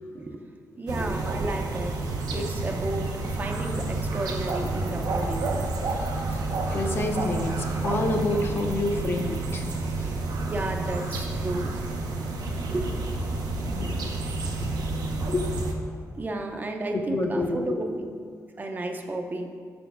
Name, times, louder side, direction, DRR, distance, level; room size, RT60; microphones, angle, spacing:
voice 1, 0.8-2.0 2.3-5.7 10.1-11.7 12.2-12.3 12.7-12.9 16.1-18.0 18.6-19.6, right 2 dB, 30° right, 3 dB, 0.5 m, -32 dB
sound 1, 0.9-15.7, right 3 dB, 90° right, 0.8 m, -29 dB
voice 2, 6.7-9.7 10.0-10.1 13.7-14.0 15.2-15.5 16.9-17.8, left 2 dB, 35° left, 3 dB, 0.6 m, -28 dB
6.2 x 4.3 x 5.6 m, 2.1 s
wide cardioid pair, 150°, 6 cm